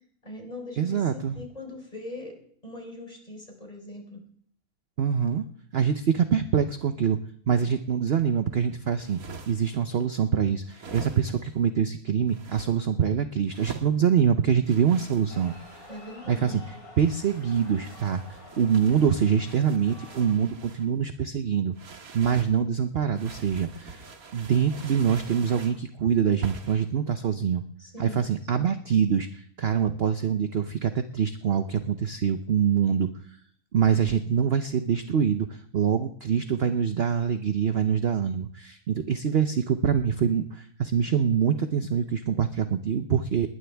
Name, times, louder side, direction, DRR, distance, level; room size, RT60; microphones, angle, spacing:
voice 1, 0.2-2.4 2.6-4.2 15.9-16.6 27.8-28.3 28.5-28.8, left 1 dB, 25° left, 2 dB, 4.4 m, -41 dB
voice 2, 0.8-1.4 5.0-5.4 5.7-7.2 7.5-9.2 9.5-15.5 16.3-21.7 22.1-24.1 24.3-27.6 28.0-33.1 33.7-43.5, right 7 dB, 50° right, 9 dB, 0.8 m, -25 dB
sound 1, 8.9-9.8 10.7-11.5 12.3-12.7 13.5-13.9 14.6-16.1 17.1-20.9 21.7-22.5 23.1-25.8 26.4-26.9, right 4 dB, 70° right, 2.1 m, -43 dB
sound 2, 15.3-20.3, left 2 dB, 65° left, 4.6 m, -49 dB
20.5 x 19.5 x 3.4 m, 0.63 s
omnidirectional pair, 1.6 m